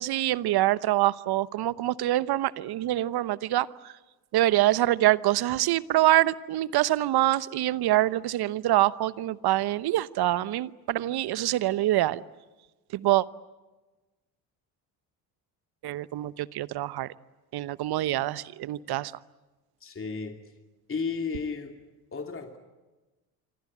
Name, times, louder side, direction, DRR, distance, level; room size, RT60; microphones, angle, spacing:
voice 1, 0.0-3.7 4.3-12.2 12.9-13.2 15.8-17.1 17.5-19.1, right 15 dB, 55° right, 1.0 m, -25 dB
voice 2, 19.8-20.4 20.9-21.7 22.1-22.6, left 5 dB, 30° left, 2.8 m, -33 dB
27.0 x 24.5 x 8.7 m
hypercardioid pair, 60°, 46 cm